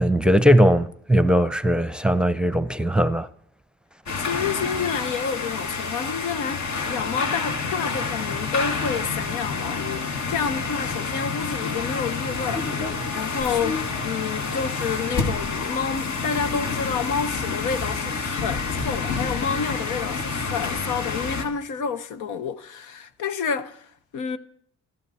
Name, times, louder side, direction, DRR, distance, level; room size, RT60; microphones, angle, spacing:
voice 1, 0.0-3.3, equal, 5° right, 0.7 m, -19 dB
voice 2, 4.1-23.9 24.1-24.4, left 6 dB, 85° left, 1.1 m, -29 dB
sound 1, 4.1-21.4, left 4 dB, 65° left, 2.3 m, -28 dB
27.0 x 12.0 x 4.3 m
cardioid pair, 90°, 30 cm